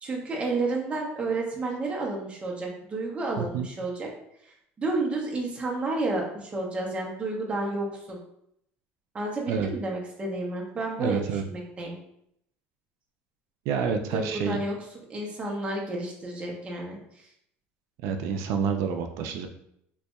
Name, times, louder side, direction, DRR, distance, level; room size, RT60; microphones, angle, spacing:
voice 1, 0.0-4.1 4.4-8.2 9.1-12.0 14.1-14.8 15.1-17.2, right 2 dB, 20° right, -1 dB, 0.9 m, -31 dB
voice 2, 11.0-11.4 13.7-14.6 18.0-19.5, right 6 dB, 65° right, 6 dB, 0.4 m, -28 dB
4.1 x 2.7 x 2.2 m, 0.74 s
cardioid pair, 130°, 6 cm